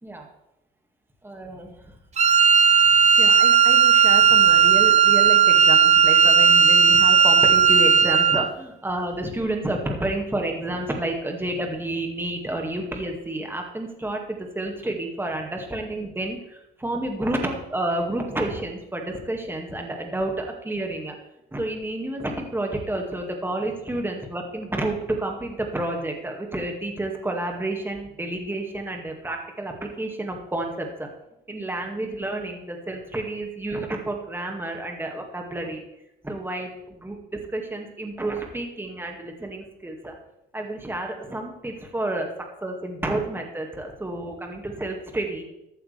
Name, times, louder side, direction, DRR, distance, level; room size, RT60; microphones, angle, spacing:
voice 1, 1.2-1.9 2.8-21.1 21.5-31.1 31.5-35.8 36.2-36.7 37.0-40.1 40.5-42.3 42.6-45.4, right 1 dB, 10° right, 2 dB, 2.0 m, -30 dB
Wind instrument woodwind instrument, 2.2-8.5, right 7 dB, 35° right, 0.6 m, -15 dB
14.5 x 8.8 x 3.4 m, 0.87 s
cardioid pair, 90°, 20 cm